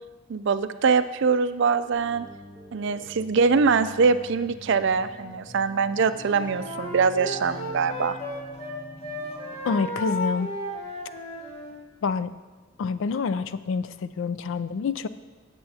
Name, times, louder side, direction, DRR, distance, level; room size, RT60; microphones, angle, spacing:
voice 1, 0.3-2.3 2.7-8.2, right 5 dB, 60° right, 12 dB, 0.4 m, -23 dB
sound 1, 1.9-9.9, left 1 dB, 15° left, 1.9 m, -45 dB
Wind instrument woodwind instrument, 6.1-8.7 9.0-11.8, left 1 dB, 30° left, 1.6 m, -34 dB
voice 2, 9.6-10.5 12.0-12.3 12.8-15.1, left 5 dB, 65° left, 14 dB, 0.4 m, -27 dB
16.5 x 6.9 x 2.8 m, 1.3 s
head